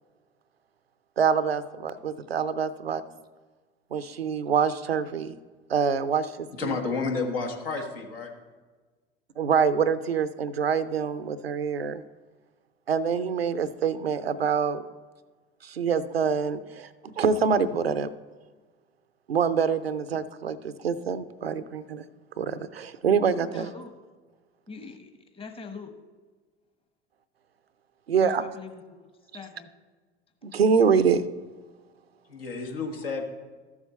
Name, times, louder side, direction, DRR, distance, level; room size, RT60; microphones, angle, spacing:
voice 1, 1.2-3.0 3.9-5.3 5.7-6.8 9.4-12.0 12.9-14.8 15.6-18.1 19.3-22.0 22.4-23.7 28.1-28.4 30.4-31.2, right 6 dB, 90° right, 14 dB, 0.5 m, -25 dB
voice 2, 6.5-8.3 32.3-33.2, left 4 dB, 75° left, 3 dB, 1.5 m, -31 dB
voice 3, 23.3-23.9 24.7-25.9 28.2-29.7, left 4 dB, 20° left, 7 dB, 1.2 m, -43 dB
13.5 x 7.2 x 4.2 m, 1.4 s
figure-of-eight pair, 70°, 29 cm